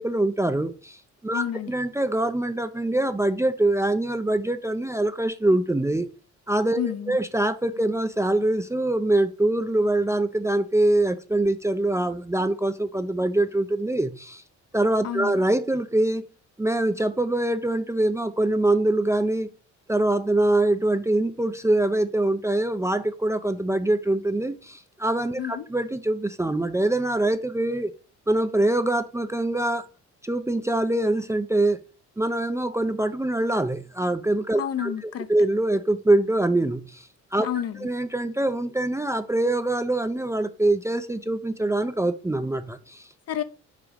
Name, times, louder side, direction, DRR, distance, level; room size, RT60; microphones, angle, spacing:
voice 1, 0.0-6.1 6.5-14.4 14.7-16.2 16.6-19.5 19.9-27.9 28.3-29.9 30.2-31.8 32.2-34.9 35.3-37.5 37.8-43.1, right 1 dB, 10° right, 0.4 m, -24 dB
voice 2, 1.3-1.7 6.8-7.2 15.0-15.4 25.4-25.7 34.5-35.3 37.4-37.9 43.3-43.4, left 10 dB, 55° left, 0.7 m, -30 dB
4.9 x 3.8 x 5.0 m
cardioid pair, 90°, 30 cm